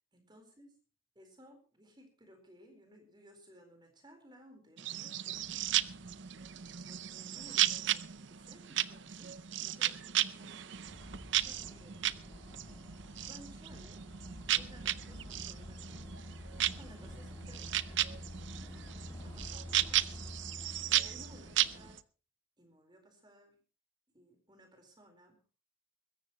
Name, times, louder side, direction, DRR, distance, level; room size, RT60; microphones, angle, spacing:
voice 1, 0.1-0.8 1.1-9.3 9.6-10.6 11.4-14.0 14.5-16.1 16.6-20.1 20.9-22.0 22.6-23.6 24.1-25.5, equal, 20° right, 5 dB, 4.2 m, -59 dB
sound 1, 4.8-22.0, right 13 dB, 60° right, 0.6 m, -35 dB
sound 2, 5.3-21.9, equal, 20° left, 3.4 m, -50 dB
22.0 x 14.0 x 3.0 m, 0.35 s
head